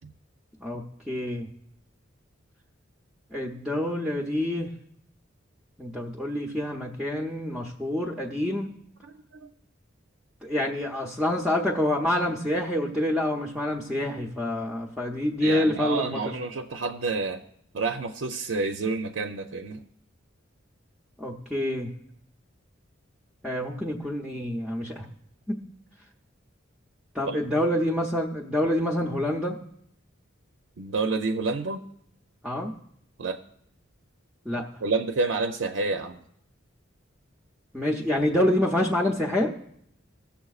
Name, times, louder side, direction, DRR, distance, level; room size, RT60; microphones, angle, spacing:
voice 1, 0.6-1.5 3.3-4.7 5.8-8.7 10.4-16.4 21.2-21.9 23.4-25.1 25.5-25.6 27.1-29.6 32.4-32.7 34.5-34.7 37.7-39.5, left 1 dB, 5° right, -2 dB, 0.6 m, -27 dB
voice 2, 9.0-9.5 15.4-17.4 17.7-19.8 27.3-27.4 30.8-31.8 33.2-33.4 34.8-36.2, right 3 dB, 70° right, 5 dB, 0.5 m, -29 dB
20.0 x 7.1 x 2.4 m, 0.72 s
head